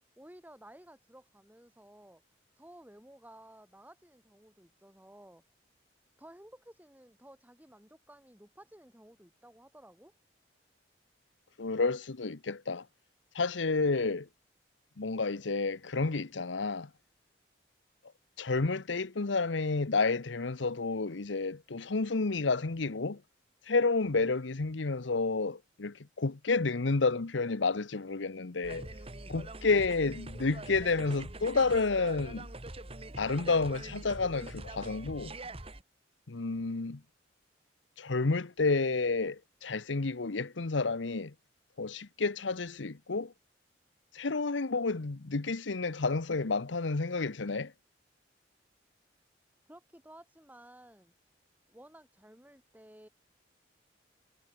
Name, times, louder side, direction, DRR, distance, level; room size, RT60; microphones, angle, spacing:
voice 1, 0.2-2.2 2.6-5.4 6.2-10.1 49.7-51.1 51.7-53.1, right 1 dB, 10° right, 6.6 m, -55 dB
voice 2, 11.6-12.8 13.3-14.3 15.0-16.9 18.4-23.2 23.7-28.9 29.3-32.5 33.2-35.3 36.3-37.0 38.0-41.3 41.8-43.3 44.1-47.7, left 3 dB, 85° left, 0.9 m, -30 dB
sound 1, 28.6-35.8, right 2 dB, 30° right, 2.1 m, -44 dB
head